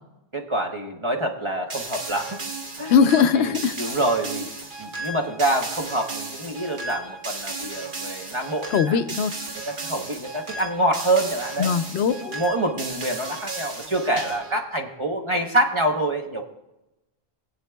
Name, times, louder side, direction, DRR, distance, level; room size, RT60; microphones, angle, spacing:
voice 1, 0.3-2.4 2.8-2.9 3.4-4.5 4.8-9.0 9.7-11.7 12.1-16.5, right 1 dB, 30° right, 3 dB, 0.9 m, -26 dB
sound 1, 1.7-14.6, right 3 dB, 55° right, 1.2 m, -35 dB
voice 2, 2.9-3.7 8.7-9.3 11.6-12.4, left 7 dB, 90° left, 11 dB, 0.9 m, -20 dB
20.0 x 8.5 x 2.2 m, 0.97 s
omnidirectional pair, 1.0 m